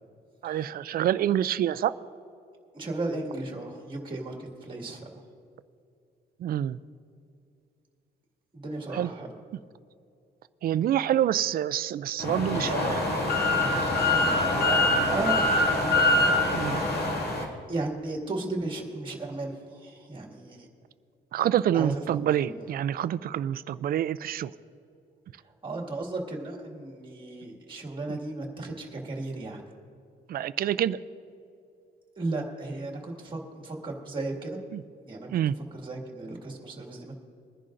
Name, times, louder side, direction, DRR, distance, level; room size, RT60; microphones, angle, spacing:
voice 1, 0.4-1.9 6.4-6.8 8.9-9.1 10.6-13.0 14.5-15.1 16.5-16.8 21.3-24.5 28.1-28.2 30.3-31.0 34.7-34.8 35.3-35.5, right 11 dB, 55° right, 16 dB, 0.4 m, -27 dB
voice 2, 2.7-5.2 8.5-9.3 14.3-15.4 17.7-20.7 21.7-22.7 25.4-29.6 32.2-34.6 35.1-35.3 35.6-37.2, right 2 dB, 25° right, 1 dB, 2.0 m, -35 dB
sound 1, 12.2-17.4, left 2 dB, 60° left, 2.1 m, -24 dB
22.0 x 11.0 x 2.6 m, 2.5 s
cardioid pair, 145°, 18 cm